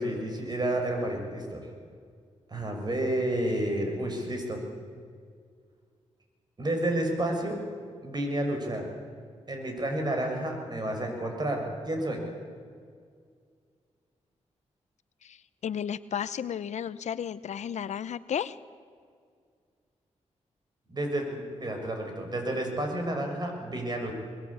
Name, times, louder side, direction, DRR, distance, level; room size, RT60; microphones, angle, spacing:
voice 1, 0.0-1.7 2.5-4.6 6.6-7.6 8.0-8.9 9.5-12.2 20.9-24.1, right 1 dB, 35° right, 3 dB, 6.4 m, -30 dB
voice 2, 15.6-18.6, left 8 dB, 75° left, 15 dB, 0.8 m, -33 dB
22.0 x 22.0 x 8.7 m, 2.1 s
cardioid pair, 75°, 12 cm